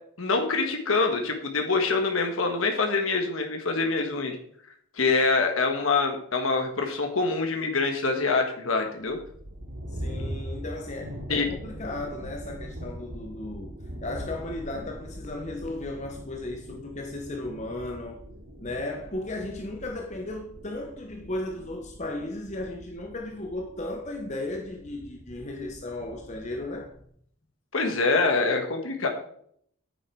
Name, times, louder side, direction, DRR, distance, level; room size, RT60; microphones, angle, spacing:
voice 1, 0.2-4.4 5.0-9.2 11.3-11.5 27.7-29.1, left 3 dB, 80° left, 1.5 m, -25 dB
sound 1, 9.1-27.0, equal, 75° right, 2.6 m, -42 dB
voice 2, 9.9-18.2 18.6-27.0, left 2 dB, 35° left, 1.0 m, -35 dB
9.1 x 9.0 x 4.6 m
head